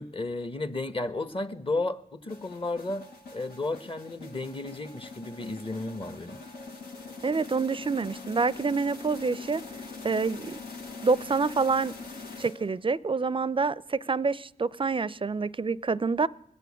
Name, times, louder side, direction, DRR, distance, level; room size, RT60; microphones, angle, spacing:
voice 1, 0.0-3.1 3.3-6.4, left 2 dB, 35° left, 1.1 m, -33 dB
sound 1, 2.3-13.0, left 3 dB, 90° left, 1.3 m, -43 dB
voice 2, 7.2-9.6 10.0-10.6 11.0-11.9 12.4-16.3, right 4 dB, 35° right, 0.4 m, -27 dB
20.5 x 6.9 x 8.3 m
cardioid pair, 40°, 16 cm